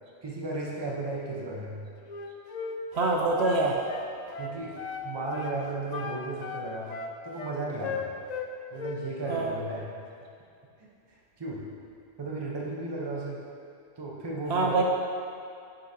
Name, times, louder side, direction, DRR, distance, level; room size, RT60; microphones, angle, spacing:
voice 1, 0.2-1.8 4.4-4.8 5.0-7.0 7.2-8.2 8.7-9.9 10.8-10.9 11.4-11.7 12.2-13.4 14.0-14.7, right 2 dB, 25° right, -3 dB, 0.8 m, -34 dB
Wind instrument woodwind instrument, 2.1-5.1 5.3-5.6 5.9-8.5 8.8-9.5, left 5 dB, 60° left, 0.4 m, -36 dB
voice 2, 2.9-3.8 9.3-9.5 14.5-14.8, right 3 dB, 70° right, 0 dB, 0.9 m, -25 dB
9.7 x 5.4 x 2.8 m, 2.5 s
omnidirectional pair, 1.2 m